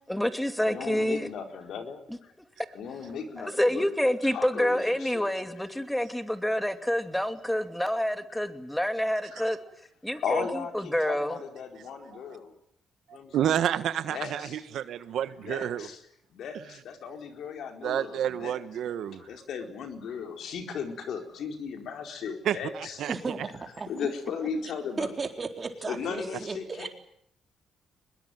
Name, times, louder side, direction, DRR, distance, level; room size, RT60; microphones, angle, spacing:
voice 1, 0.1-1.3 2.1-2.2 3.4-9.6 10.0-10.4 10.9-11.4, equal, 5° left, 2.6 m, -27 dB
voice 2, 0.6-2.3 2.7-3.9 4.3-5.7 6.5-6.6 8.3-8.4 8.8-8.9 9.3-9.5 10.2-12.5 13.1-13.6 14.0-14.6 15.4-16.0 16.3-18.5 19.1-23.0 23.9-25.2 25.9-26.9, left 6 dB, 70° left, 4.4 m, -36 dB
voice 3, 13.3-15.9 17.8-19.2 22.4-22.6 23.0-23.1, right 10 dB, 75° right, 1.4 m, -29 dB
voice 4, 23.1-24.1 25.0-26.9, right 4 dB, 35° right, 4.2 m, -35 dB
23.5 x 21.5 x 9.4 m
cardioid pair, 90°, 0 cm